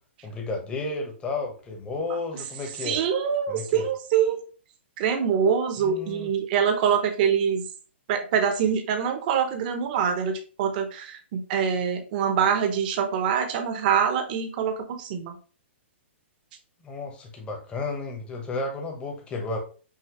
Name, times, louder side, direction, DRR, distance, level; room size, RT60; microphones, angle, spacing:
voice 1, 0.2-3.0 3.5-3.9 5.8-6.3 16.8-19.6, left 3 dB, 15° left, 1 dB, 1.1 m, -32 dB
voice 2, 2.8-4.4 5.0-7.6 8.1-15.4, right 7 dB, 45° right, 6 dB, 0.9 m, -24 dB
5.7 x 2.7 x 3.0 m, 0.38 s
hypercardioid pair, 140°, 7 cm